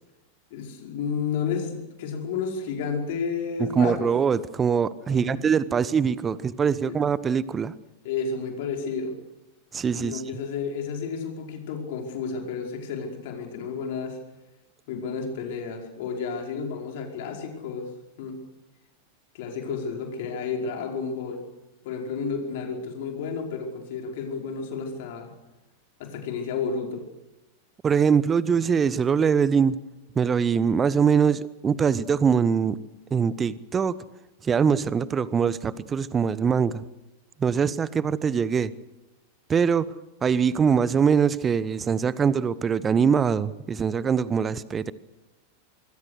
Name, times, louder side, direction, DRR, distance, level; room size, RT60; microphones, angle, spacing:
voice 1, 0.5-4.1 5.0-5.4 6.8-7.0 8.0-9.1 10.0-14.2 14.9-17.9 18.2-18.4 19.3-21.5 21.8-25.3 26.0-27.0, left 5 dB, 50° left, 3 dB, 5.1 m, -31 dB
voice 2, 3.6-7.7 9.7-10.2 27.8-29.8 30.1-32.8 33.1-34.0 34.4-36.8 37.4-38.7 39.5-39.9 40.2-44.9, right 6 dB, 20° right, 19 dB, 1.0 m, -23 dB
26.0 x 23.0 x 6.5 m, 0.96 s
figure-of-eight pair, 90°, 0 cm